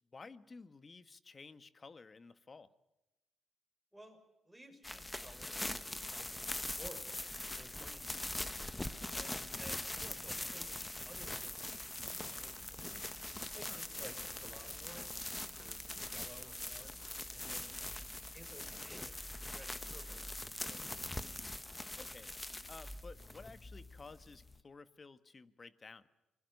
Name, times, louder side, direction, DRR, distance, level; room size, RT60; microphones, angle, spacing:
voice 1, 0.1-2.7 8.1-8.3 9.7-9.8 13.7-13.8 22.0-22.4 22.7-26.1, left 4 dB, 30° left, 13 dB, 1.5 m, -54 dB
voice 2, 4.4-8.5 9.1-12.9 13.5-15.8 16.1-17.8 18.3-21.1, right 1 dB, 5° right, 3 dB, 6.6 m, -56 dB
sound 1, 4.8-24.6, left 1 dB, 15° left, 1.5 m, -43 dB
27.5 x 21.5 x 6.7 m, 0.96 s
cardioid pair, 90°, 0 cm